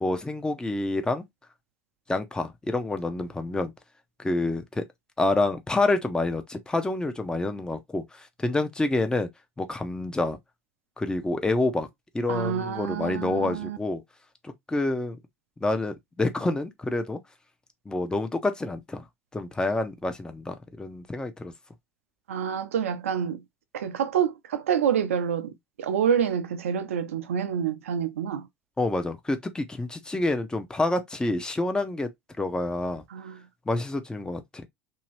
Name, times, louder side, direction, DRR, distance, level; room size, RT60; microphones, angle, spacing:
voice 1, 0.0-1.3 2.1-3.7 4.2-4.8 5.2-9.3 9.6-10.4 11.0-11.9 12.1-14.0 14.4-15.2 15.6-17.2 17.9-19.0 19.3-21.5 28.8-32.1 32.4-33.0 33.7-34.7, left 2 dB, 10° left, 0.6 m, -28 dB
voice 2, 12.3-13.8 22.3-23.4 23.7-25.5 25.8-28.5 33.1-33.4, right 8 dB, 70° right, 0.5 m, -27 dB
2.9 x 2.7 x 3.1 m
figure-of-eight pair, 75°, 8 cm